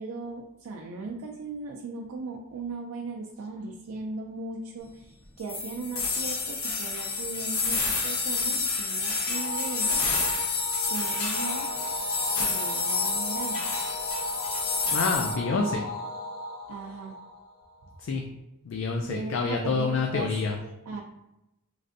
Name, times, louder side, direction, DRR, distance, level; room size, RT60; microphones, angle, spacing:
voice 1, 0.0-10.0 10.9-11.7 12.4-13.6 16.7-17.1 19.1-20.3 20.6-21.0, right 3 dB, 70° right, -1 dB, 0.4 m, -38 dB
sound 1, 5.5-15.3, left 4 dB, 75° left, 0.9 m, -29 dB
sound 2, 9.3-17.9, equal, 45° left, 0.8 m, -36 dB
voice 2, 14.9-15.9 18.0-18.2 18.6-20.6, left 4 dB, 60° left, 1 dB, 0.3 m, -27 dB
3.2 x 2.5 x 2.5 m, 0.89 s
head